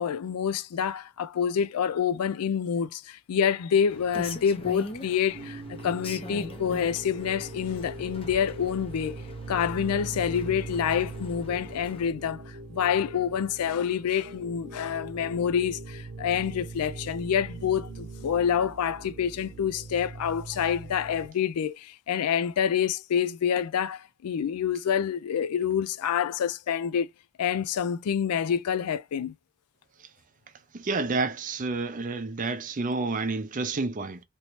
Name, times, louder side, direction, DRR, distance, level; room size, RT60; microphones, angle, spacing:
voice 1, 0.0-9.2 9.5-27.1 27.4-29.3, left 8 dB, 85° left, 0.4 m, -27 dB
Rain, 3.9-12.1, left 2 dB, 25° left, 0.6 m, -43 dB
sound 1, 5.3-21.3, right 2 dB, 70° right, 0.8 m, -41 dB
voice 2, 30.7-34.2, right 3 dB, 35° right, 0.5 m, -29 dB
3.0 x 2.8 x 3.0 m
head